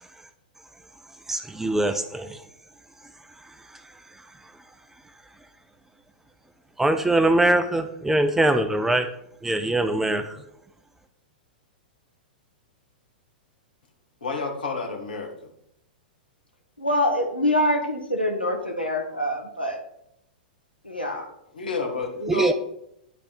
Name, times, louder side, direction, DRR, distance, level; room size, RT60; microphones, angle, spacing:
voice 1, 1.3-2.4 3.7-3.8 6.8-9.1 9.4-10.4 22.3-22.5, right 1 dB, 5° right, 0.4 m, -22 dB
voice 2, 14.2-15.5 21.5-22.5, left 3 dB, 70° left, 1.6 m, -30 dB
voice 3, 16.8-19.8 20.8-21.3, left 1 dB, 90° left, 1.2 m, -25 dB
10.0 x 3.4 x 5.4 m
figure-of-eight pair, 100°, 5 cm